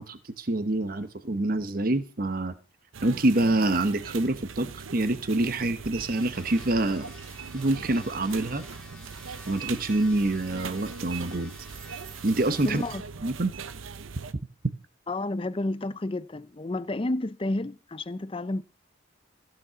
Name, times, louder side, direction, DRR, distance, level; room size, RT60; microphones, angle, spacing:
voice 1, 0.0-2.5 3.0-7.1 7.5-8.6 9.5-11.5 12.2-12.8 13.2-13.5, right 2 dB, 45° right, 0.9 m, -26 dB
sound 1, 2.9-14.3, right 5 dB, 80° right, 0.7 m, -41 dB
sound 2, 6.0-13.0, left 2 dB, 5° left, 2.7 m, -50 dB
voice 2, 12.6-13.0 15.1-18.6, left 2 dB, 25° left, 0.5 m, -31 dB
15.0 x 6.0 x 6.9 m
head